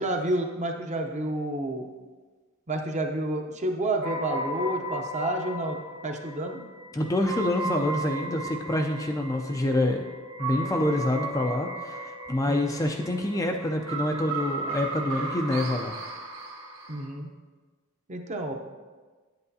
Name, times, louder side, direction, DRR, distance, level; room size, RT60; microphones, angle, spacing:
voice 1, 0.0-1.9 2.7-6.6 12.5-12.8 16.9-17.3 18.1-18.5, right 1 dB, 35° right, 3 dB, 0.7 m, -30 dB
sound 1, 4.0-17.1, right 2 dB, 65° right, 1.4 m, -35 dB
voice 2, 6.9-10.0 10.4-16.0, left 1 dB, 15° left, 3 dB, 0.4 m, -27 dB
9.2 x 8.0 x 2.7 m, 1.4 s
head